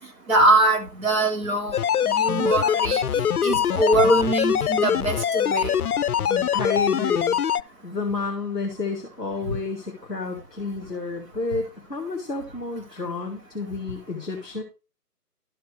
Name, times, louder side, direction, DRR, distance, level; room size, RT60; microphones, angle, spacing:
voice 1, 0.3-5.8 9.5-9.6, right 1 dB, 55° right, 1 dB, 3.3 m, -22 dB
sound 1, 1.7-7.6, left 8 dB, 65° left, 0.5 m, -23 dB
voice 2, 6.2-7.4 7.8-14.6, left 4 dB, 5° left, -13 dB, 0.8 m, -30 dB
12.0 x 4.8 x 4.7 m, 0.32 s
figure-of-eight pair, 150°, 48 cm